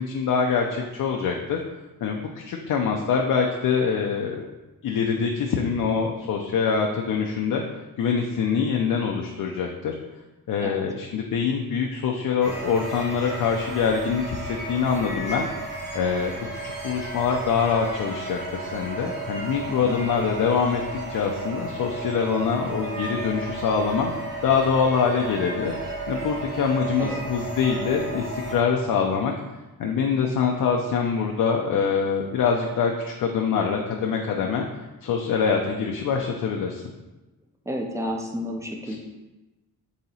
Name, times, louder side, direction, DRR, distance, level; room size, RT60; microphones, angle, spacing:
voice 1, 0.0-1.6 2.0-4.5 4.8-7.6 8.0-9.9 10.5-15.5 15.9-20.8 21.1-24.1 24.4-25.7 26.1-29.3 29.8-34.7 35.0-36.8 38.9-39.0, left 6 dB, 60° left, 1 dB, 0.5 m, -24 dB
sound 1, 12.4-28.6, right 2 dB, 30° right, 0.8 m, -33 dB
voice 2, 37.7-39.0, equal, 10° right, 1 dB, 0.4 m, -31 dB
4.0 x 2.8 x 4.1 m, 1.1 s
wide cardioid pair, 155°, 37 cm